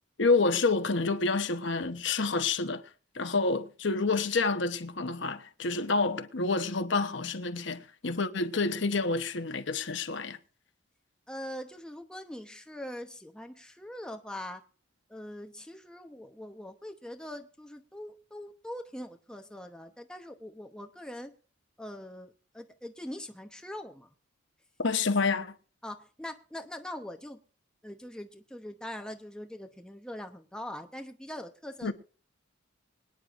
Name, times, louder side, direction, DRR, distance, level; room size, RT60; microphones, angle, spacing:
voice 1, 0.2-2.8 3.1-10.4 24.8-25.5 31.8-31.9, left 3 dB, 60° left, 1.0 m, -28 dB
voice 2, 11.3-14.6 15.1-21.3 21.8-24.1 25.8-27.4 27.8-31.9, left 1 dB, 5° left, 0.9 m, -42 dB
25.0 x 9.7 x 2.6 m
head